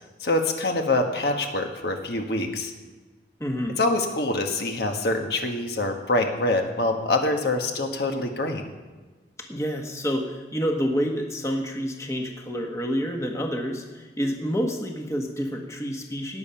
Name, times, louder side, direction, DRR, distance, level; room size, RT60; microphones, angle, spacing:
voice 1, 0.2-2.7 3.8-8.7, left 2 dB, 60° left, 4 dB, 1.3 m, -25 dB
voice 2, 3.4-3.8 9.5-16.4, equal, 15° left, 2 dB, 1.2 m, -28 dB
18.5 x 7.0 x 5.7 m, 1.3 s
head